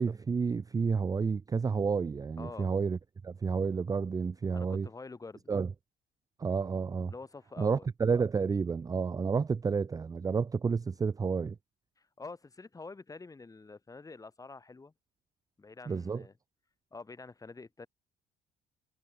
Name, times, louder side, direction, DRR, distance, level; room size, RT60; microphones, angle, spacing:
voice 1, 0.0-3.0 3.2-4.9 5.5-5.7 6.4-7.1 7.6-11.6 15.9-16.2, right 5 dB, 20° right, 0.5 m, -30 dB
voice 2, 2.4-2.7 4.5-5.5 7.1-7.9 12.0-14.9 15.6-16.3 16.9-17.9, left 3 dB, 20° left, 6.8 m, -47 dB
cardioid pair, 110°, 17 cm